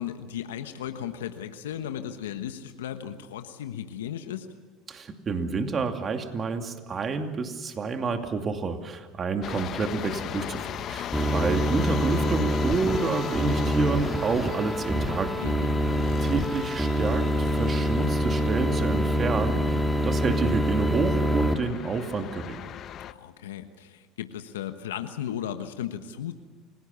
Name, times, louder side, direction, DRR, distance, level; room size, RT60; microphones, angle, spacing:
voice 1, 0.0-4.5 15.4-16.0 23.0-26.3, left 10 dB, 90° left, 8 dB, 1.3 m, -36 dB
voice 2, 4.9-15.4 16.2-22.6, right 4 dB, 35° right, 6 dB, 2.5 m, -29 dB
sound 1, 9.4-23.1, left 10 dB, 45° left, 1.0 m, -38 dB
sound 2, 11.1-21.5, equal, 5° right, 2.0 m, -26 dB
29.0 x 18.0 x 7.1 m, 1.3 s
hypercardioid pair, 90°, 0 cm